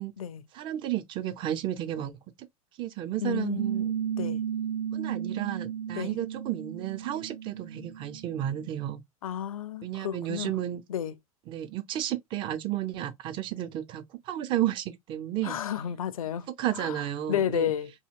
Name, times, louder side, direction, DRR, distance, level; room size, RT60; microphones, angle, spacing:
voice 1, 0.5-2.2 2.8-3.9 4.9-9.0 9.8-10.8 11.5-15.6 16.6-17.7, right 12 dB, 25° right, 0.4 m, -32 dB
voice 2, 3.2-3.6 4.2-4.4 5.9-6.2 9.2-10.5 10.9-11.1 15.4-16.5 16.7-17.0 17.3-17.9, left 9 dB, 65° left, 0.4 m, -31 dB
Piano, 3.6-8.7, right 8 dB, 90° right, 0.4 m, -34 dB
2.7 x 2.7 x 2.4 m
figure-of-eight pair, 85°, 19 cm